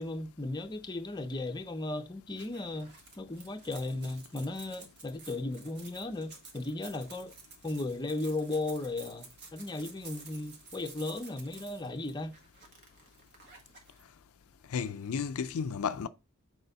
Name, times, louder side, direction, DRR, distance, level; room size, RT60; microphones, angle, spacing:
voice 1, 0.0-2.9 3.2-7.3 7.6-12.3, left 2 dB, 20° left, 0.7 m, -36 dB
sound 1, 2.3-14.0, right 4 dB, 50° right, 1.8 m, -52 dB
voice 2, 14.7-16.1, left 6 dB, 75° left, 0.4 m, -33 dB
6.8 x 4.3 x 4.0 m
head